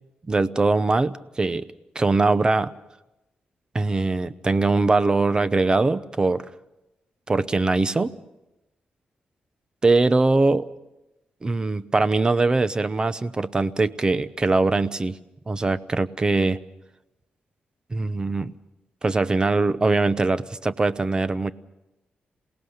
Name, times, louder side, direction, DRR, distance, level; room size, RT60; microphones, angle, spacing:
voice 1, 0.3-1.7 1.9-2.7 3.7-6.5 7.3-8.1 9.8-10.7 11.4-15.2 15.5-16.6 17.9-18.5 19.0-21.5, right 3 dB, 25° right, 15 dB, 0.7 m, -22 dB
27.5 x 18.5 x 6.5 m, 0.95 s
wide cardioid pair, 125°, 3 cm